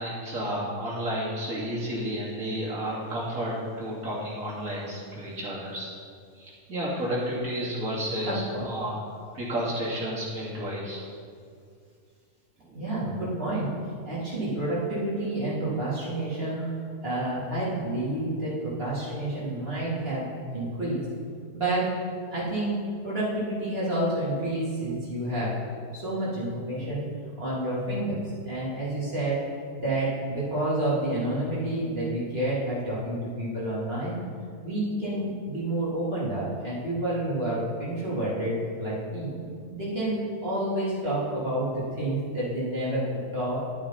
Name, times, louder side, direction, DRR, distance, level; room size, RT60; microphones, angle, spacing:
voice 1, 0.0-5.9 6.4-9.0 9.3-11.0 12.6-12.9 39.5-39.7, equal, 60° right, -6 dB, 3.2 m, -31 dB
voice 2, 8.3-8.7 12.7-13.7 14.1-16.7 17.0-21.0 21.5-21.9 22.3-25.5 25.9-27.0 27.4-29.4 29.8-34.2 34.6-39.3 39.7-43.1 43.3-43.6, right 1 dB, 35° right, -9 dB, 3.6 m, -29 dB
12.0 x 8.9 x 4.2 m, 2.2 s
omnidirectional pair, 1.7 m